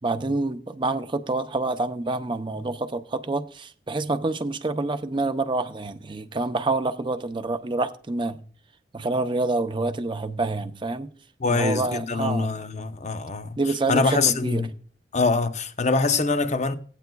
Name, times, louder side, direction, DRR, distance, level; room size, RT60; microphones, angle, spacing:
voice 1, 0.0-8.4 8.9-11.1 11.5-12.6 13.6-14.7, right 2 dB, 25° right, 0.6 m, -27 dB
voice 2, 11.4-13.6 13.9-14.7 15.1-16.7, left 4 dB, 40° left, 0.7 m, -24 dB
16.5 x 9.2 x 2.3 m
head